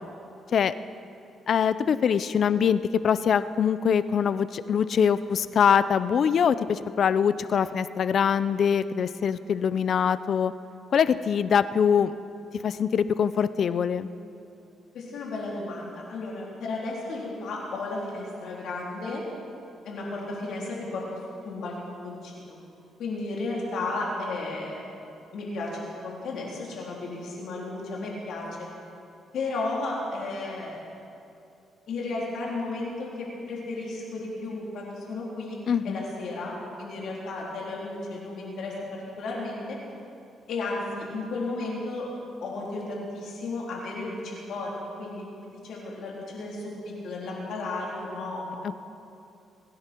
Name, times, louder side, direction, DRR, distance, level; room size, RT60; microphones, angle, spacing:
voice 1, 1.5-10.5 10.9-12.1 12.6-14.1 35.7-36.0, left 7 dB, 55° left, 14 dB, 0.5 m, -23 dB
voice 2, 14.9-19.2 19.8-21.0 21.4-21.8 22.0-22.6 23.0-24.8 25.3-28.7 29.3-30.8 31.9-35.6 35.8-39.8 40.5-42.1 42.4-48.4, left 2 dB, 70° left, -3 dB, 3.8 m, -34 dB
24.0 x 10.5 x 4.6 m, 2.7 s
cardioid pair, 90°, 0 cm